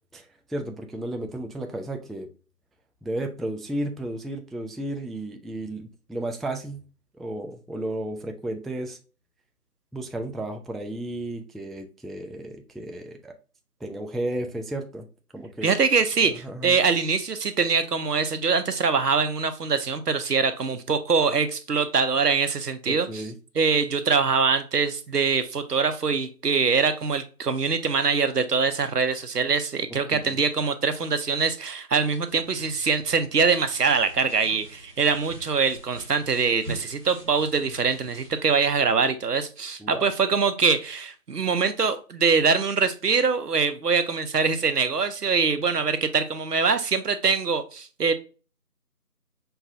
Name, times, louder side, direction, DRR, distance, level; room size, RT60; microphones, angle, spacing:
voice 1, 0.1-2.3 3.0-6.8 7.2-9.0 9.9-13.3 13.8-15.1 15.3-15.7 16.2-16.8 22.9-23.4 29.9-30.4 39.8-40.1, right 1 dB, ahead, 4 dB, 0.3 m, -33 dB
voice 2, 15.6-23.2 23.6-48.1, right 5 dB, 80° right, 10 dB, 0.7 m, -23 dB
sound 1, 32.3-38.7, right 1 dB, 20° right, 1.5 m, -44 dB
5.5 x 2.3 x 2.6 m, 0.35 s
figure-of-eight pair, 170°, 47 cm